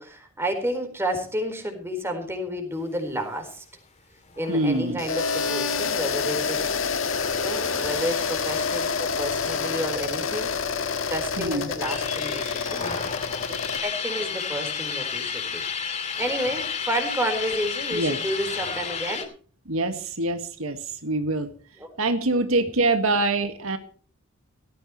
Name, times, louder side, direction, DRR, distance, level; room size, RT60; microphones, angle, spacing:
voice 1, 0.0-3.6 4.4-6.9 7.4-10.5 11.1-12.9 13.5-19.3 21.8-21.9 22.3-22.4, equal, 10° right, 5 dB, 4.3 m, -31 dB
sound 1, 4.3-9.4 9.7-9.8 10.1-11.0 11.5-19.2, left 6 dB, 35° left, 2.8 m, -33 dB
voice 2, 4.5-5.0 11.4-11.7 17.9-18.2 19.7-21.5 22.0-23.8, right 2 dB, 85° right, 7 dB, 1.9 m, -25 dB
sound 2, 5.0-13.8, left 5 dB, 70° left, 1.8 m, -27 dB
18.0 x 15.0 x 3.1 m, 0.41 s
head